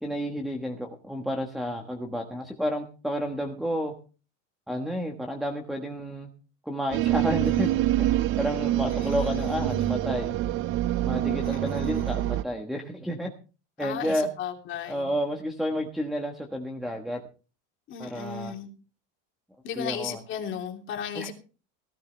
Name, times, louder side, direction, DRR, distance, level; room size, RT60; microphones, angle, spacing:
voice 1, 0.0-3.9 4.7-6.3 6.7-7.7 8.0-8.1 8.4-10.4 11.0-13.3 13.8-14.3 14.9-17.2 18.0-18.5 19.8-20.2 21.1-21.3, equal, ahead, 1.2 m, -31 dB
sound 1, 6.9-12.4, right 14 dB, 40° right, 0.5 m, -26 dB
voice 2, 7.4-7.8 8.8-9.9 11.4-12.3 13.8-15.1 17.9-18.7 19.6-21.3, left 7 dB, 35° left, 2.9 m, -36 dB
18.5 x 13.5 x 3.3 m
cardioid pair, 160°, 34 cm